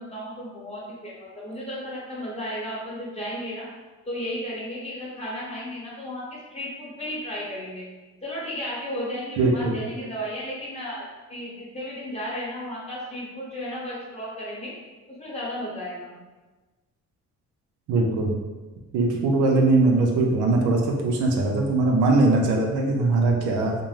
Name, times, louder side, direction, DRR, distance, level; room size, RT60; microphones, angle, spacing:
voice 1, 0.0-3.7 4.1-7.9 8.2-11.0 11.3-14.7 15.1-16.2, equal, 20° left, -6 dB, 1.0 m, -34 dB
voice 2, 9.4-9.7 17.9-18.3 18.9-23.7, right 2 dB, 85° right, 0 dB, 0.5 m, -21 dB
2.6 x 2.1 x 3.2 m, 1.2 s
cardioid pair, 90°, 30 cm